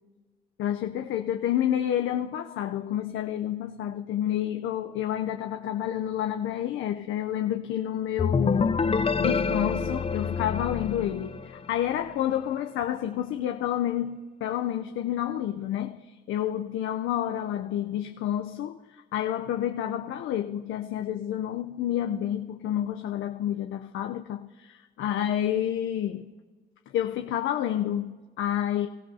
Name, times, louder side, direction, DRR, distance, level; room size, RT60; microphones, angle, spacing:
voice 1, 0.6-8.7 9.2-26.3 26.9-28.9, left 11 dB, 80° left, 6 dB, 0.6 m, -29 dB
sound 1, 8.2-11.9, left 5 dB, 30° left, 0.7 m, -27 dB
25.0 x 14.5 x 2.7 m, 1.4 s
cardioid pair, 90°, 20 cm